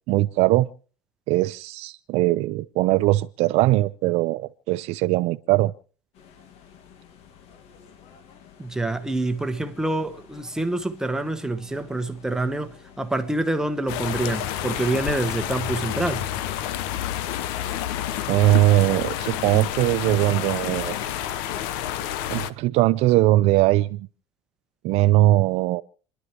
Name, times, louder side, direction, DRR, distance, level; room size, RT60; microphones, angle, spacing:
voice 1, 0.1-0.7 1.3-5.7 18.3-21.0 22.3-24.1 24.8-25.8, right 16 dB, 60° right, 0.6 m, -20 dB
sound 1, 6.1-21.8, left 7 dB, 55° left, 1.8 m, -50 dB
voice 2, 8.6-16.3, right 2 dB, 5° right, 1.1 m, -26 dB
sound 2, 13.9-22.5, left 11 dB, 90° left, 1.0 m, -29 dB
29.5 x 11.0 x 3.0 m
cardioid pair, 150°, 12 cm